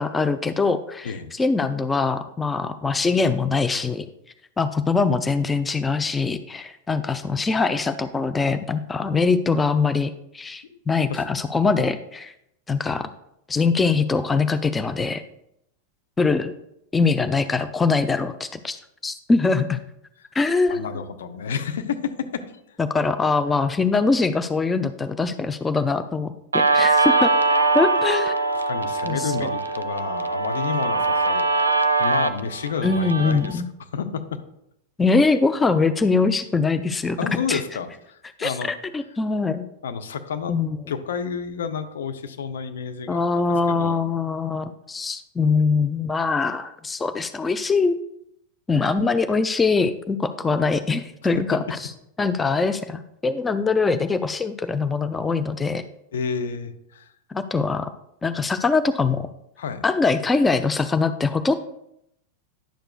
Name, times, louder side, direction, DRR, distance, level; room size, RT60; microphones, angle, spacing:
voice 1, 0.0-4.1 4.6-12.3 12.7-13.1 13.5-15.2 16.2-16.5 16.9-19.8 20.3-20.9 22.8-27.3 27.7-28.3 29.0-29.5 32.8-33.7 35.0-37.2 37.5-37.6 38.4-38.6 38.9-39.7 40.5-40.8 43.1-48.0 48.7-51.9 52.2-55.8 57.3-57.9 58.2-59.3 59.8-61.5, left 4 dB, 15° left, 11 dB, 0.3 m, -22 dB
voice 2, 20.7-22.4 28.7-31.4 32.0-33.6 33.9-34.4 37.2-38.7 39.8-40.6 40.9-44.2 56.1-57.1 59.6-59.8, left 6 dB, 60° left, 9 dB, 0.6 m, -30 dB
Guitar, 26.5-33.5, right 3 dB, 75° right, 0.4 m, -22 dB
10.0 x 6.6 x 2.3 m, 0.78 s
figure-of-eight pair, 90°, 0 cm